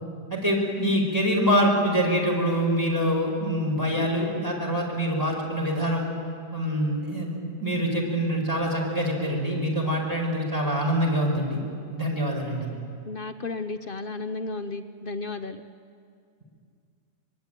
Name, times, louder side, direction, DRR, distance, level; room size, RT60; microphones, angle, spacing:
voice 1, 0.3-6.0 6.5-11.6 11.9-12.8, equal, 10° right, -2 dB, 5.3 m, -25 dB
voice 2, 3.9-4.2 13.1-15.6, left 3 dB, 45° left, 8 dB, 0.8 m, -34 dB
24.5 x 22.5 x 9.2 m, 2.3 s
omnidirectional pair, 1.7 m